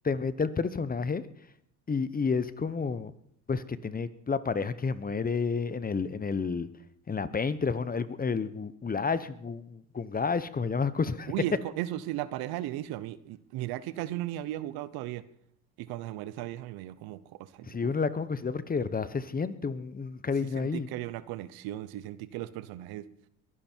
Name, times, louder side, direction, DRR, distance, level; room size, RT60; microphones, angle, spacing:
voice 1, 0.0-1.2 1.9-3.1 3.5-6.7 7.1-11.3 17.7-20.9, left 5 dB, 25° left, 15 dB, 1.0 m, -30 dB
voice 2, 11.3-15.2 15.8-17.9 20.4-23.1, right 14 dB, 75° right, 16 dB, 1.0 m, -36 dB
22.0 x 10.5 x 4.6 m, 0.69 s
supercardioid pair, 85°, 37 cm